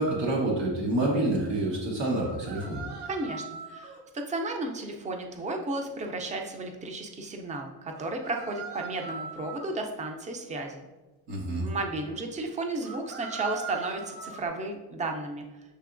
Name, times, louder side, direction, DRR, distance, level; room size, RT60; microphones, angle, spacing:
voice 1, 0.0-2.9 11.3-11.7, right 2 dB, 90° right, -3 dB, 1.2 m, -27 dB
sound 1, 2.2-4.0 7.9-9.8 12.8-14.5, right 5 dB, 70° right, 0.9 m, -40 dB
voice 2, 3.1-10.9 11.6-15.5, right 2 dB, 20° right, 4 dB, 0.4 m, -33 dB
6.7 x 2.9 x 2.5 m, 1.2 s
cardioid pair, 125°, 43 cm